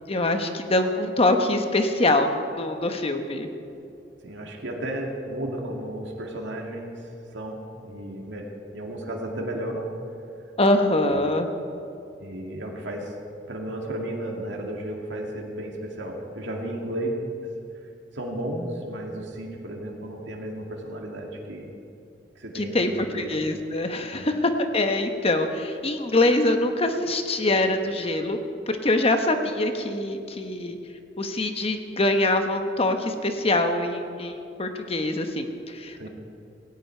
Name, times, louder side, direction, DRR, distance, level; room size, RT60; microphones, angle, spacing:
voice 1, 0.1-3.5 10.6-11.5 22.5-28.4 28.7-30.8 31.2-36.1, left 2 dB, 35° left, 6 dB, 1.2 m, -24 dB
voice 2, 4.2-9.9 11.0-11.3 12.2-13.1 13.5-17.2 18.1-21.7 22.4-23.3 24.1-24.3 35.9-36.1, right 1 dB, 80° right, 0 dB, 2.2 m, -34 dB
18.0 x 16.5 x 4.6 m, 2.6 s
head